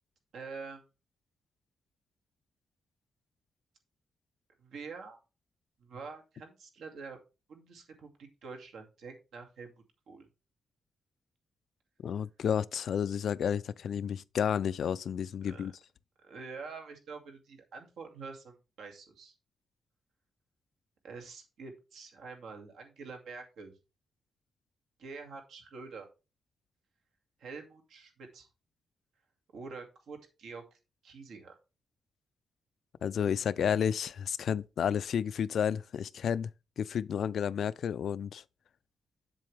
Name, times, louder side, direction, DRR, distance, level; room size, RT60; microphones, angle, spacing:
voice 1, 0.3-0.8 4.6-5.2 5.8-7.2 7.5-9.7 10.1-10.3 15.4-15.7 16.2-19.3 21.0-23.7 25.0-26.1 27.4-28.5 29.5-31.6, right 4 dB, 75° right, 2.2 m, -46 dB
voice 2, 12.0-15.7 33.0-36.5 36.8-38.4, left 8 dB, 55° left, 0.3 m, -31 dB
7.8 x 7.5 x 3.4 m
wide cardioid pair, 175°, 0 cm